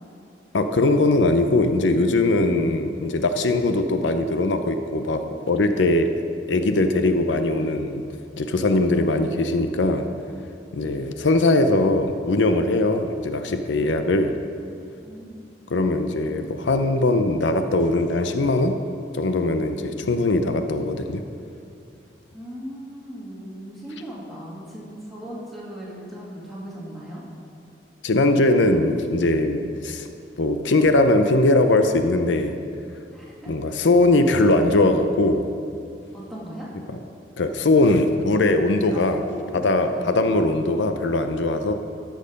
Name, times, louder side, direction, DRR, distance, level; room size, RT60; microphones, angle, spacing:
voice 1, 0.5-6.1 6.5-8.0 8.4-10.1 10.7-14.4 15.7-18.8 19.1-21.2 28.0-30.1 30.4-32.6 33.5-35.5 36.9-37.0 37.4-39.2 39.5-41.7, left 2 dB, 85° left, 7 dB, 0.6 m, -20 dB
voice 2, 15.0-15.8 22.3-27.2 29.5-29.7 33.1-33.5 36.1-36.7 38.9-40.1 41.6-41.7, right 1 dB, ahead, -6 dB, 2.2 m, -38 dB
13.5 x 6.4 x 5.2 m, 2.5 s
head